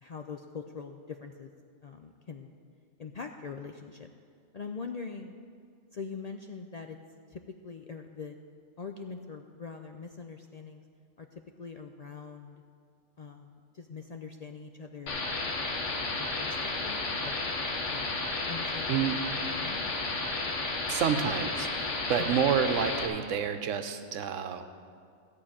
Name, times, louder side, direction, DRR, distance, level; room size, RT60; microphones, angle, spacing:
voice 1, 0.0-1.5 1.8-2.6 3.0-4.1 4.5-5.3 5.9-7.0 7.3-8.4 8.8-10.8 11.2-11.3 11.6-12.6 13.2-15.2 16.0-17.3 17.9-18.1 18.5-19.0 19.3-19.9 22.2-22.3, left 5 dB, 55° left, 4 dB, 0.4 m, -43 dB
sound 1, 15.1-23.1, left 3 dB, 75° left, 1.5 m, -32 dB
voice 2, 18.9-19.2 20.9-21.7 22.1-24.6, right 8 dB, 85° right, 9 dB, 1.1 m, -29 dB
14.0 x 4.7 x 8.7 m, 2.2 s
omnidirectional pair, 1.2 m